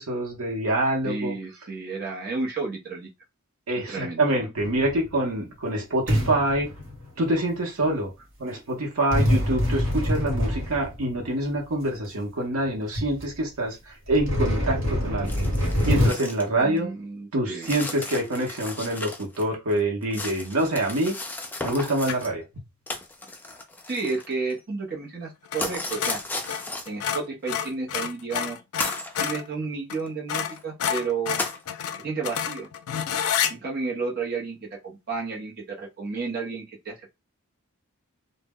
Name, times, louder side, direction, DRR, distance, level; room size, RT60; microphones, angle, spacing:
voice 1, 0.0-1.3 3.7-6.7 7.2-8.1 8.4-15.5 15.8-16.9 17.3-21.1 21.6-22.4, right 1 dB, 85° right, 0 dB, 0.7 m, -26 dB
voice 2, 1.0-3.1 3.9-4.5 16.6-17.8 23.9-26.2 26.9-28.6 29.2-31.4 32.0-32.7 33.5-37.1, right 4 dB, 45° right, -1 dB, 0.6 m, -32 dB
sound 1, 4.6-5.2 6.1-7.3 9.1-11.2 12.0-12.1 12.7-12.8 12.9-13.3 14.1-16.1, equal, 60° right, 1.1 m, -25 dB
sound 2, 15.3-16.5 16.8-16.9 17.6-19.4 19.7-22.3 22.9-24.6 25.6-27.1 28.0-28.1 28.8-29.3 30.1-30.2 30.5-30.6 31.4-31.6, left 2 dB, 10° left, 0.3 m, -35 dB
sound 3, 22.0-22.4 25.5-25.7 25.9-29.5 29.9-30.0 30.3-33.5, left 8 dB, 85° left, 0.4 m, -29 dB
2.0 x 2.0 x 3.4 m, 0.24 s
head